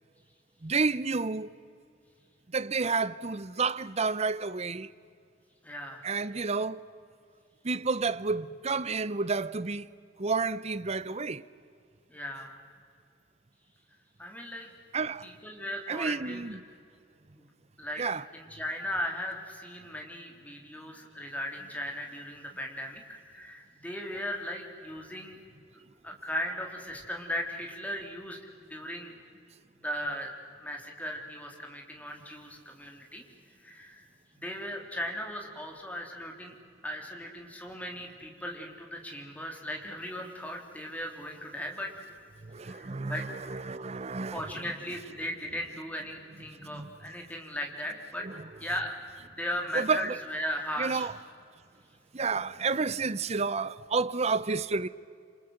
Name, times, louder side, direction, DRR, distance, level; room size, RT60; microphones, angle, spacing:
voice 1, 0.6-1.5 2.5-4.9 6.0-6.8 7.6-9.9 10.2-11.4 14.9-15.3 15.9-16.6 18.0-18.2 42.4-44.5 46.6-46.9 48.2-48.4 49.7-50.2 50.8-51.1 52.1-54.9, right 4 dB, 35° right, 0.7 m, -30 dB
voice 2, 5.6-6.0 12.1-12.6 14.2-14.7 15.2-16.5 17.4-17.5 17.8-18.0 18.3-25.4 25.7-29.1 29.8-30.3 30.6-33.2 33.6-34.1 34.3-36.5 36.8-41.9 42.6-43.2 44.3-48.3 48.6-49.0 49.3-51.1, equal, 10° left, 3.5 m, -37 dB
27.5 x 27.5 x 7.9 m
head